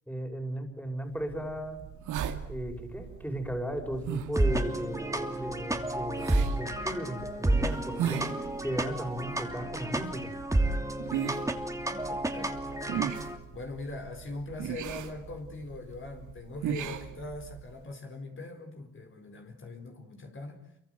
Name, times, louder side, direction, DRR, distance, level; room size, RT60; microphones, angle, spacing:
voice 1, 0.1-1.8 2.5-8.3 8.6-10.3, equal, 5° left, 5 dB, 5.5 m, -36 dB
sound 1, 1.2-17.8, right 9 dB, 80° right, 2.4 m, -39 dB
sound 2, 4.3-13.4, right 1 dB, 10° right, 2.8 m, -31 dB
voice 2, 11.8-13.0 13.5-20.6, left 2 dB, 40° left, 4 dB, 4.7 m, -42 dB
28.0 x 24.0 x 8.0 m, 0.79 s
cardioid pair, 90°, 30 cm